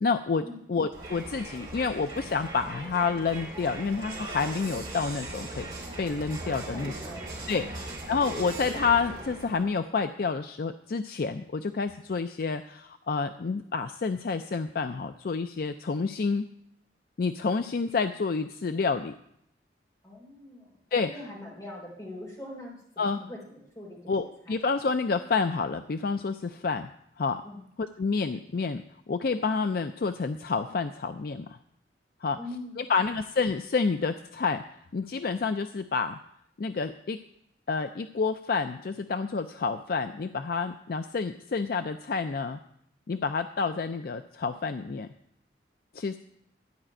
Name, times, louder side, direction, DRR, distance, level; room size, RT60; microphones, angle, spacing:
voice 1, 0.0-5.7 6.0-6.9 7.5-16.5 17.2-19.1 20.9-21.1 23.0-23.2 24.1-26.9 27.2-27.4 27.8-28.8 29.1-31.5 32.2-32.4 32.8-34.6 34.9-36.2 36.6-37.2 37.7-42.6 43.1-45.1 45.9-46.2, left 4 dB, 55° left, 9 dB, 0.4 m, -29 dB
Crowd, 0.9-9.8, right 2 dB, 25° right, 2.6 m, -39 dB
voice 2, 6.4-7.8 20.0-24.6 27.4-27.6 32.4-32.8, left 1 dB, 20° left, -2 dB, 3.7 m, -43 dB
12.5 x 5.1 x 8.8 m, 0.74 s
head